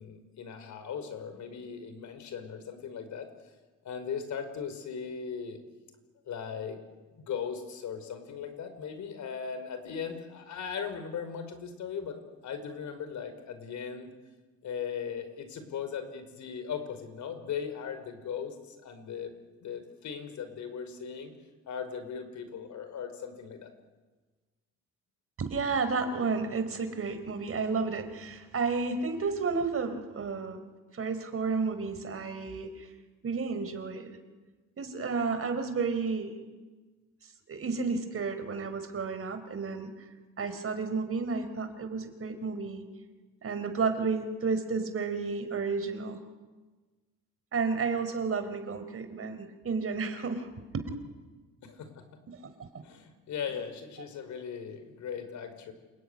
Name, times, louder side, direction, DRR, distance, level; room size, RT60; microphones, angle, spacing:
voice 1, 0.0-3.3 3.8-5.6 6.2-6.8 7.1-12.2 12.4-14.1 14.6-19.3 19.6-21.3 21.7-23.7 51.6-52.0 52.8-55.7, left 7 dB, 70° left, 9 dB, 5.1 m, -38 dB
voice 2, 25.4-30.6 30.9-32.9 33.2-34.2 34.8-36.3 37.5-39.9 40.4-42.8 43.4-46.2 47.5-50.5 50.7-50.9 52.3-52.7, right 4 dB, 50° right, 10 dB, 4.2 m, -32 dB
28.5 x 20.5 x 9.9 m, 1.3 s
cardioid pair, 90°, 30 cm